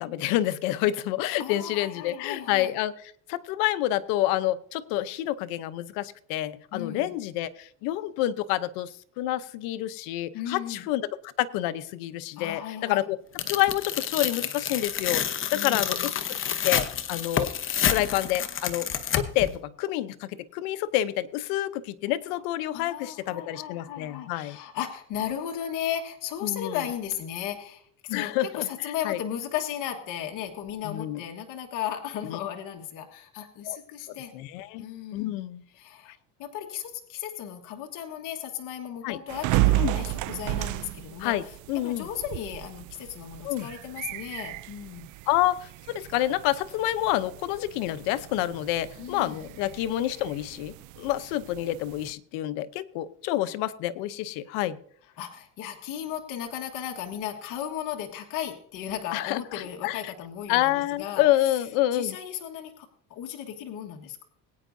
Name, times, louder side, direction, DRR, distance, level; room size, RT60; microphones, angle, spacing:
voice 1, 0.0-2.9 3.3-11.1 11.4-13.2 13.5-17.5 17.9-18.9 19.1-24.6 26.4-26.8 28.1-29.2 30.8-31.2 32.2-32.4 33.6-33.8 34.3-34.8 35.1-35.6 39.0-39.2 39.8-40.0 41.2-42.1 43.4-43.7 45.3-54.8 59.1-60.1 60.5-62.2, left 14 dB, 85° left, 14 dB, 0.8 m, -28 dB
voice 2, 1.4-2.7 6.7-7.1 10.3-10.9 12.4-13.0 15.5-16.1 22.7-34.3 34.8-35.3 35.7-36.1 36.4-41.5 41.8-45.1 49.0-49.4 55.2-61.6 61.9-64.3, left 10 dB, 65° left, 3 dB, 1.5 m, -35 dB
Tearing, 13.4-19.5, left 9 dB, 35° left, 0.9 m, -29 dB
sound 1, 39.3-52.1, right 18 dB, 60° right, 0.5 m, -33 dB
21.5 x 9.2 x 2.7 m, 0.62 s
cardioid pair, 120°, 34 cm